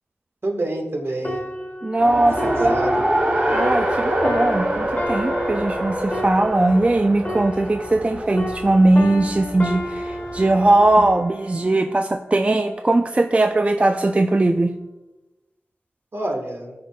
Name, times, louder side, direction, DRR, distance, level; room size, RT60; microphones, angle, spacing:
voice 1, 0.4-1.4 2.4-3.0 16.1-16.7, right 1 dB, 60° right, 2 dB, 1.4 m, -27 dB
sound 1, 1.2-8.1 8.4-12.0 12.6-12.8, left 1 dB, 35° left, 1.4 m, -32 dB
voice 2, 1.8-2.7 3.5-14.7, right 2 dB, 30° right, 6 dB, 0.3 m, -19 dB
Race car auto racing, 2.0-11.1, right 1 dB, 45° right, 2.3 m, -25 dB
13.0 x 4.7 x 2.3 m, 1.0 s
wide cardioid pair, 55°, 5 cm